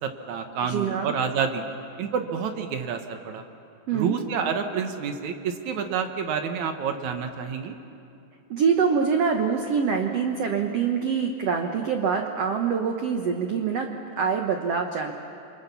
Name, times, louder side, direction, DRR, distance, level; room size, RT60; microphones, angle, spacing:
voice 1, 0.0-1.6 2.0-3.4 3.9-7.8, right 6 dB, 65° right, 5 dB, 2.0 m, -28 dB
voice 2, 0.7-1.2 3.9-4.2 8.5-13.9 14.2-15.1, right 6 dB, 85° right, 4 dB, 1.4 m, -25 dB
29.0 x 23.5 x 7.0 m, 2.6 s
omnidirectional pair, 4.6 m